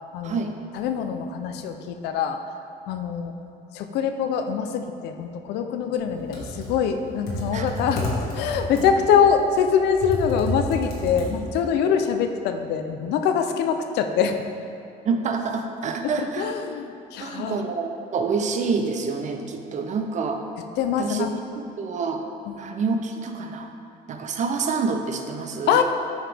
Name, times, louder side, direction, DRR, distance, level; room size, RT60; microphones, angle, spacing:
voice 1, 0.1-0.4 0.7-2.4 2.9-3.3 3.7-8.0 8.3-14.4 16.0-17.6 20.8-21.3 22.5-22.7 25.7-25.8, left 7 dB, 80° left, 7 dB, 0.5 m, -24 dB
Computer keyboard, 6.1-11.7, left 1 dB, 60° left, 1.5 m, -30 dB
voice 2, 15.0-16.5 17.2-20.4 21.0-21.3 21.8-22.2 22.6-23.7 24.1-25.8, right 4 dB, 45° right, 5 dB, 0.6 m, -27 dB
7.3 x 4.8 x 3.4 m, 2.6 s
cardioid pair, 110°, 17 cm